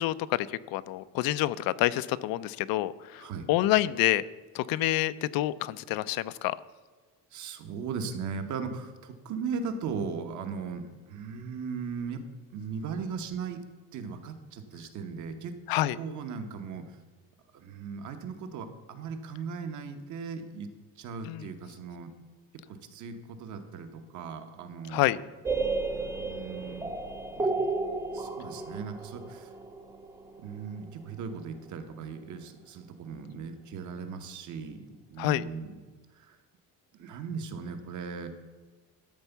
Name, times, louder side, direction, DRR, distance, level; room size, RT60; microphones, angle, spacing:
voice 1, 0.0-4.2 4.5-6.6 15.7-16.0 21.2-21.5 24.9-25.2 35.2-35.5, left 15 dB, 85° left, 16 dB, 0.5 m, -28 dB
voice 2, 7.3-12.2 12.5-13.6 13.9-15.5 16.0-16.8 17.5-20.7 21.0-22.1 22.7-25.2 26.1-26.9 27.4-27.5 28.1-29.5 30.4-34.8 35.1-35.8 36.2-36.4 36.9-38.3, right 5 dB, 55° right, 7 dB, 1.1 m, -38 dB
sound 1, 25.5-31.2, right 3 dB, 10° right, 0.5 m, -33 dB
12.5 x 4.4 x 7.0 m, 1.4 s
cardioid pair, 175°, 35 cm